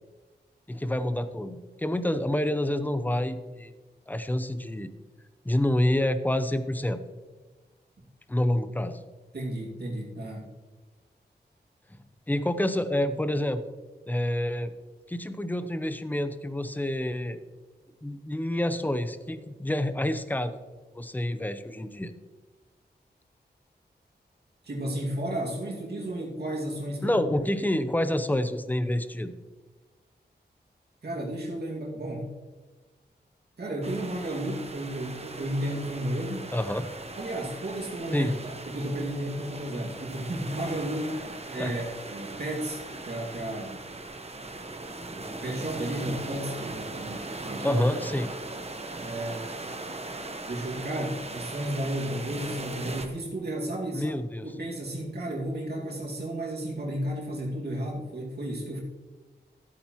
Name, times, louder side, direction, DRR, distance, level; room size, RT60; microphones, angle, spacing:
voice 1, 0.7-3.7 4.1-4.9 5.4-7.0 8.3-9.0 12.3-13.6 14.1-14.7 15.1-17.4 18.0-20.5 20.9-22.1 27.0-29.3 36.5-36.9 38.1-38.3 41.6-41.7 47.6-48.3 53.9-54.5, left 1 dB, 10° left, 11 dB, 0.6 m, -28 dB
voice 2, 9.3-10.5 24.6-27.1 27.6-27.7 31.0-32.3 33.6-36.6 37.2-43.8 45.2-48.0 49.0-49.6 50.5-58.8, right 1 dB, 65° right, -2 dB, 2.3 m, -33 dB
sound 1, 33.8-53.1, right 2 dB, 35° right, 1.0 m, -39 dB
14.5 x 8.6 x 3.1 m, 1.3 s
wide cardioid pair, 80°, 18 cm